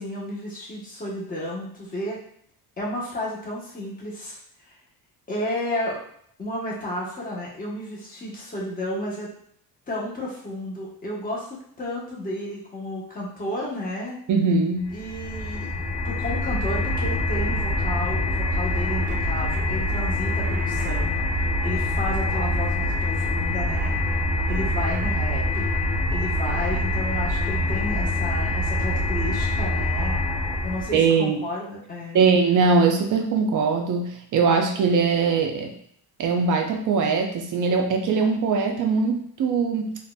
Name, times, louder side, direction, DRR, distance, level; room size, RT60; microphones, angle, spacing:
voice 1, 0.0-2.2 2.8-4.4 4.6-4.7 5.3-6.0 6.4-9.3 9.9-14.2 14.9-15.7 16.0-23.9 24.5-25.7 26.1-30.1 30.6-32.2, left 1 dB, 20° left, -5 dB, 1.0 m, -32 dB
voice 2, 14.3-14.9 30.9-31.4 32.1-35.7 36.2-39.9, right 4 dB, 50° right, 3 dB, 0.5 m, -21 dB
sound 1, 14.9-31.0, left 1 dB, 65° left, 1.2 m, -25 dB
4.0 x 2.5 x 2.2 m, 0.66 s
cardioid pair, 140°, 40 cm